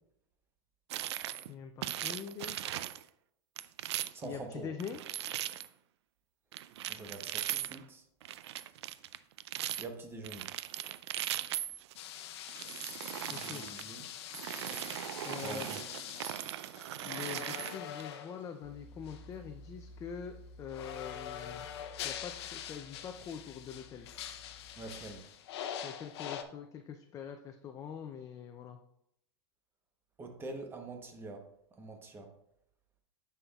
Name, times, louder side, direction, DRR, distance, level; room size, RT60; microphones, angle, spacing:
sound 1, 0.9-1.5 1.8-3.0 3.6-4.3 4.8-5.7 6.5-7.8 8.2-9.9 10.2-11.9 12.5-13.8 14.3-18.0, right 13 dB, 80° right, 0.4 m, -39 dB
voice 1, 1.5-2.6 4.2-5.0 13.3-13.6 15.2-15.7 17.0-21.7 22.0-24.1 25.8-28.8, left 7 dB, 25° left, 5 dB, 0.4 m, -44 dB
voice 2, 4.1-4.7 6.9-8.0 9.8-10.5 13.2-14.1 15.4-15.8 24.8-25.2 30.2-31.4 31.8-32.3, right 3 dB, 15° right, 5 dB, 0.9 m, -45 dB
sound 2, 11.9-18.5 19.1-19.3 20.7-26.4, left 9 dB, 70° left, 0.7 m, -44 dB
sound 3, 18.6-25.2, left 2 dB, 5° left, 1.0 m, -54 dB
9.9 x 5.6 x 2.3 m, 0.77 s
supercardioid pair, 140°, 14 cm